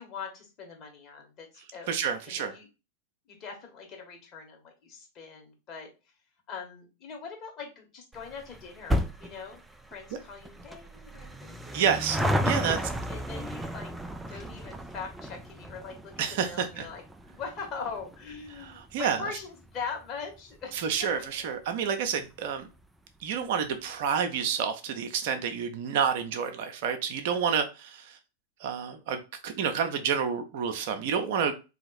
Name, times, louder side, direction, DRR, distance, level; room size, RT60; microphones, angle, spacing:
voice 1, 0.0-2.7 3.3-5.9 6.5-9.6 9.9-11.8 12.4-13.9 14.3-16.1 16.4-21.5, left 5 dB, 35° left, 1 dB, 1.6 m, -42 dB
voice 2, 1.9-2.5 11.7-12.2 12.4-12.8 16.2-16.8 18.6-19.2 20.7-22.7 23.2-28.2 28.6-31.5, right 7 dB, 50° right, 7 dB, 0.6 m, -29 dB
sound 1, 8.1-20.9 21.2-21.3 22.1-22.2 22.4-22.5 22.8-22.9, equal, 5° right, 0.4 m, -34 dB
3.9 x 2.8 x 4.1 m, 0.29 s
figure-of-eight pair, 90°, 0 cm